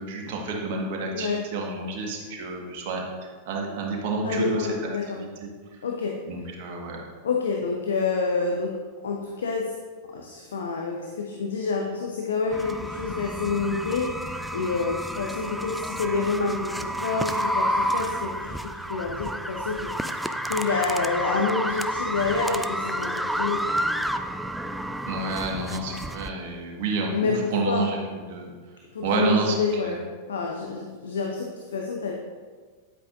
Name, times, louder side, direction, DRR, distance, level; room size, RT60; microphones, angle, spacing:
voice 1, 0.0-3.0 3.4-4.7 5.1-5.5 6.3-7.0 25.1-28.0 28.3-28.5 29.0-30.0, right 3 dB, 50° right, 0 dB, 1.5 m, -29 dB
voice 2, 4.2-5.2 5.8-6.2 7.2-8.8 9.0-9.7 10.1-18.5 18.9-23.6 24.0-24.1 27.1-27.9 28.9-30.0 30.3-32.1, left 4 dB, 65° left, 1 dB, 0.8 m, -28 dB
sound 1, 12.5-26.3, equal, ahead, 0.4 m, -30 dB
9.4 x 8.6 x 2.6 m, 1.5 s
figure-of-eight pair, 90°, 0 cm